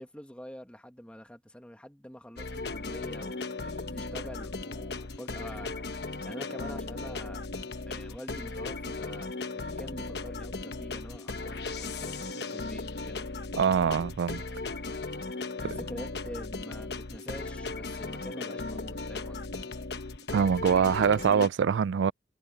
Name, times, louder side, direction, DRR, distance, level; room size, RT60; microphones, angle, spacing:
voice 1, 0.0-5.9 6.2-7.5 7.9-13.3 15.6-19.5, equal, 5° left, 1.6 m, -46 dB
sound 1, 2.4-21.5, left 3 dB, 60° left, 1.1 m, -37 dB
voice 2, 13.6-14.4 20.3-22.1, right 7 dB, 90° right, 0.4 m, -24 dB
head